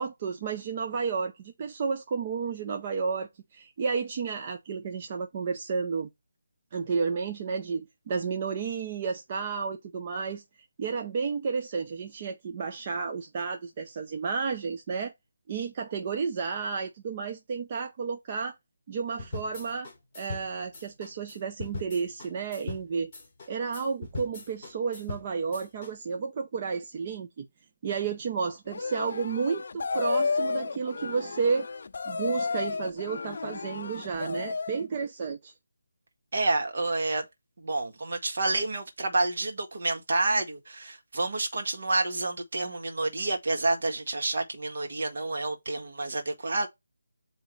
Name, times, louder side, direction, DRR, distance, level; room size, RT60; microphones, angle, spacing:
voice 1, 0.0-6.1 6.7-10.4 10.8-15.1 15.5-18.5 18.9-19.9 20.1-23.1 23.5-27.5 27.8-31.7 32.1-35.5, right 5 dB, 25° right, 0.6 m, -32 dB
sound 1, 19.2-25.9, left 3 dB, 15° left, 2.9 m, -40 dB
sound 2, 28.7-34.8, left 4 dB, 45° left, 0.5 m, -32 dB
voice 2, 36.3-37.2 37.6-46.7, right 2 dB, 50° right, 1.6 m, -29 dB
8.0 x 2.9 x 4.6 m
figure-of-eight pair, 175°, 0 cm